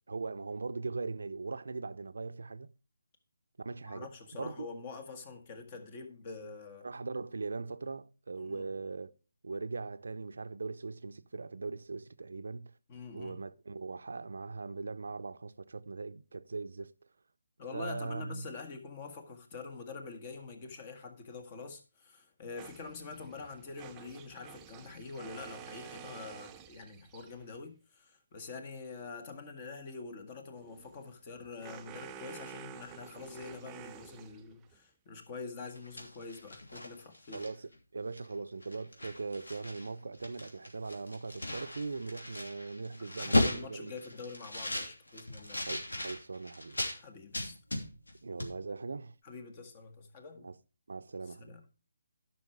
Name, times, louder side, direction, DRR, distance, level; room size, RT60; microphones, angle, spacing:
voice 1, 0.1-2.7 3.6-4.1 4.4-4.7 6.8-9.1 9.4-12.7 13.1-16.9 17.7-18.5 37.3-43.9 45.7-46.8 48.2-49.1 50.4-50.6 50.9-51.5, right 4 dB, 70° right, 0.6 m, -40 dB
voice 2, 3.9-6.9 8.4-8.7 12.9-13.4 17.6-37.5 43.0-45.6 46.9-47.6 49.2-50.5 51.3-51.8, left 4 dB, 30° left, 1.7 m, -46 dB
sound 1, 22.6-27.5 30.5-34.8, right 9 dB, 15° right, 0.5 m, -50 dB
sound 2, 35.7-37.7 38.2-38.3 38.6-39.9 40.1-47.0 47.3-48.1 48.4-48.5, left 1 dB, 90° left, 2.9 m, -36 dB
11.0 x 6.0 x 4.8 m
figure-of-eight pair, 155°, 0 cm